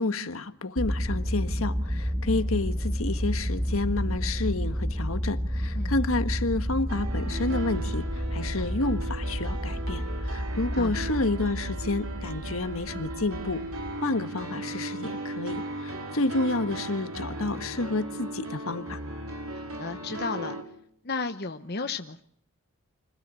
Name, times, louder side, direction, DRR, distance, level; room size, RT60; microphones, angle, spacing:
voice 1, 0.0-13.6 14.0-19.0, left 2 dB, 75° left, 1.5 m, -30 dB
sound 1, 0.8-13.9, equal, 15° right, 2.5 m, -30 dB
sound 2, 6.9-20.6, right 2 dB, 80° right, 4.1 m, -37 dB
voice 2, 19.5-20.6 21.0-22.2, left 4 dB, 45° left, 1.0 m, -33 dB
25.5 x 17.0 x 8.3 m
head